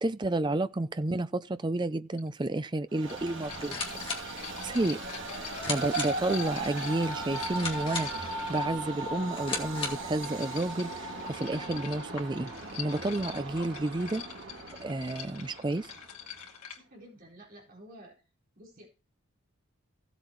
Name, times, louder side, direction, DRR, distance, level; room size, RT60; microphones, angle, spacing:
voice 1, 0.0-3.8 4.6-5.0 5.7-12.5 12.8-14.2 14.8-15.9, right 2 dB, 20° right, 0.5 m, -31 dB
sound 1, 2.2-2.3 3.0-8.9 9.8-16.8, left 8 dB, 90° left, 2.3 m, -44 dB
Train, 2.9-16.4, right 3 dB, 60° right, 2.9 m, -38 dB
sound 2, 3.5-10.2, left 3 dB, 25° left, 2.4 m, -39 dB
voice 2, 16.9-18.1 18.5-18.9, right 1 dB, 40° right, 4.3 m, -51 dB
16.5 x 8.0 x 3.1 m
head